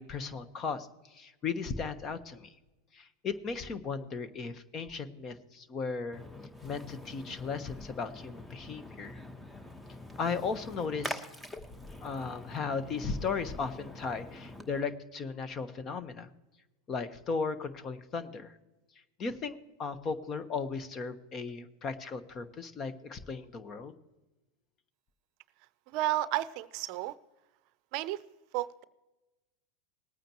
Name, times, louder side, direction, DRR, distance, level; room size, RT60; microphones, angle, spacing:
voice 1, 0.0-2.5 2.9-6.2 6.6-9.2 10.2-11.2 12.0-16.3 16.9-18.5 19.2-23.9, left 5 dB, 35° left, 12 dB, 1.1 m, -36 dB
Splash splatter, 6.1-14.8, left 1 dB, 10° left, 1.1 m, -45 dB
voice 2, 25.9-27.1 27.9-28.2 28.5-28.8, right 16 dB, 55° right, 16 dB, 0.6 m, -32 dB
20.0 x 9.1 x 3.0 m, 1.1 s
hypercardioid pair, 100°, 0 cm